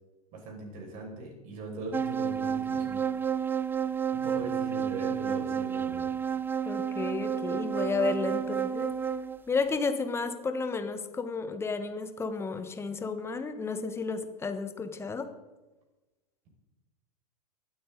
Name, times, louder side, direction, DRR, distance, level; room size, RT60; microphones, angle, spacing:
voice 1, 0.3-3.0 4.1-6.1, right 2 dB, 40° right, 1 dB, 5.7 m, -40 dB
sound 1, 1.9-9.4, right 7 dB, 10° right, 0.4 m, -31 dB
voice 2, 6.7-8.9 9.5-15.3, left 4 dB, 10° left, 9 dB, 1.3 m, -32 dB
19.0 x 13.5 x 3.9 m, 1.1 s
figure-of-eight pair, 95°, 20 cm